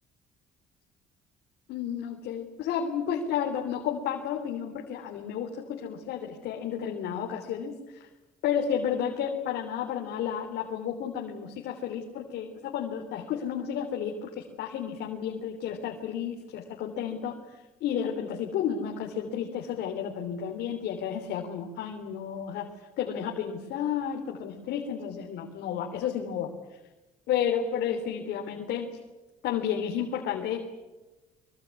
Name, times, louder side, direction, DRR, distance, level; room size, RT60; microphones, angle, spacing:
voice 1, 1.7-8.1 8.4-17.4 17.8-22.7 23.0-26.5 27.3-28.9 29.4-30.6, left 8 dB, 80° left, 2 dB, 3.5 m, -32 dB
25.5 x 24.5 x 8.4 m, 1.1 s
cardioid pair, 110°, 17 cm